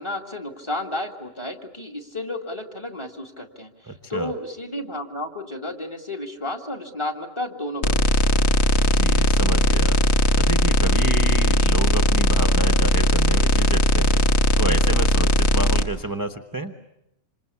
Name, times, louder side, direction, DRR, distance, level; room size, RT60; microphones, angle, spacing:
voice 1, 0.0-8.2, left 1 dB, 20° left, 6 dB, 2.0 m, -32 dB
voice 2, 3.9-4.3 8.7-10.0 10.4-14.2 14.6-16.7, right 2 dB, 15° right, 8 dB, 0.9 m, -30 dB
sound 1, 7.8-15.8, left 1 dB, 55° left, 1.5 m, -18 dB
27.0 x 26.5 x 8.4 m, 0.85 s
omnidirectional pair, 1.4 m